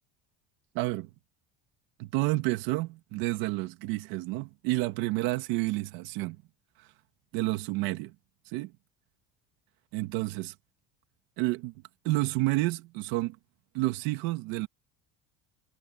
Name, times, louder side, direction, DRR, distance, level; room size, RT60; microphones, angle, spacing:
voice 1, 0.7-1.1 2.0-6.4 6.8-6.9 7.3-8.1 8.5-8.7 9.9-10.5 11.4-11.7 12.0-13.4 13.7-14.7, right 19 dB, 85° right, 2.0 m, -30 dB
cardioid pair, 180°, 34 cm